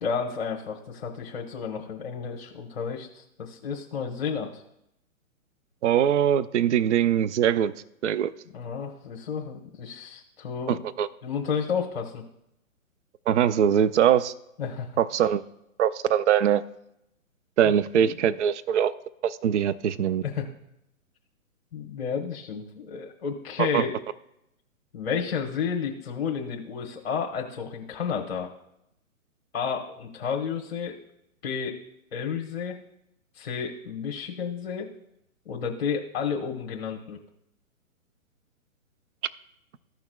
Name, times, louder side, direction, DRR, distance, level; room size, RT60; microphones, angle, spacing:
voice 1, 0.0-4.6 8.5-10.8 11.2-12.2 14.6-15.0 17.6-18.1 20.2-20.4 21.7-23.9 24.9-28.5 29.5-31.0 31.4-31.7 32.1-32.8 33.3-34.9 35.4-37.2, left 6 dB, 45° left, 0 dB, 1.2 m, -31 dB
voice 2, 5.8-7.7 8.0-8.3 10.7-11.1 13.3-14.3 15.0-15.4 15.8-16.6 17.6-18.9 19.2-20.2 23.6-23.8, right 9 dB, 55° right, 15 dB, 0.5 m, -22 dB
15.0 x 5.9 x 2.3 m, 0.82 s
hypercardioid pair, 155°, 42 cm